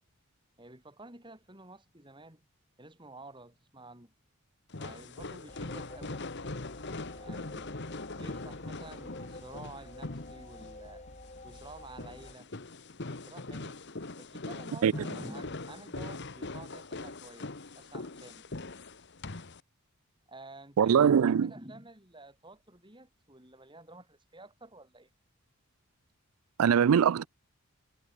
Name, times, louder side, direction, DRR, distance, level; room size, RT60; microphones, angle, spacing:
voice 1, 0.6-2.5 2.8-4.1 4.8-6.2 7.1-11.1 11.4-12.5 13.3-13.8 14.2-18.5 20.3-25.1, right 2 dB, 20° right, 5.4 m, -50 dB
sound 1, 4.7-19.6, left 2 dB, 50° left, 1.4 m, -41 dB
sound 2, 5.5-12.3, left 2 dB, 30° left, 6.7 m, -49 dB
voice 2, 20.8-21.5 26.6-27.2, right 7 dB, 75° right, 0.4 m, -22 dB
head